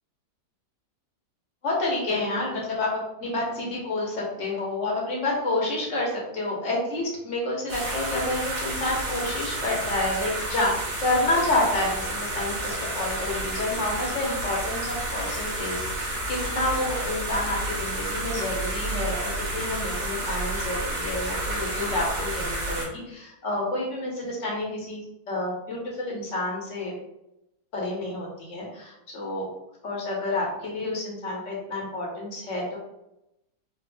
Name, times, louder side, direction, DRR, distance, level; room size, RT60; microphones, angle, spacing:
voice 1, 1.6-10.7 11.0-25.0 25.3-26.9 27.7-29.5 29.8-32.8, left 2 dB, 55° left, -3 dB, 1.2 m, -29 dB
sound 1, 7.7-22.9, right 1 dB, 70° right, 1.6 m, -30 dB
4.1 x 2.4 x 2.2 m, 0.86 s
omnidirectional pair, 1.7 m